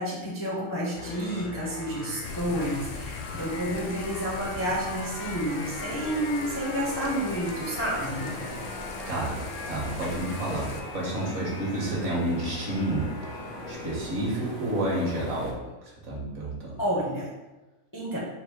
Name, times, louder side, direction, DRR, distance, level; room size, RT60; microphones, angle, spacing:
voice 1, 0.0-8.3 16.8-17.3 17.9-18.2, equal, 20° left, -5 dB, 0.5 m, -30 dB
sound 1, 0.9-14.0, left 3 dB, 85° left, 1.2 m, -40 dB
Thunder / Rain, 2.2-10.8, left 3 dB, 65° left, 0.9 m, -40 dB
sound 2, 5.4-15.5, right 1 dB, 75° right, 1.7 m, -42 dB
voice 2, 9.1-9.4 9.6-15.5 16.0-16.8, right 1 dB, 55° right, -5 dB, 1.6 m, -30 dB
4.7 x 2.2 x 4.8 m, 1.1 s
omnidirectional pair, 1.5 m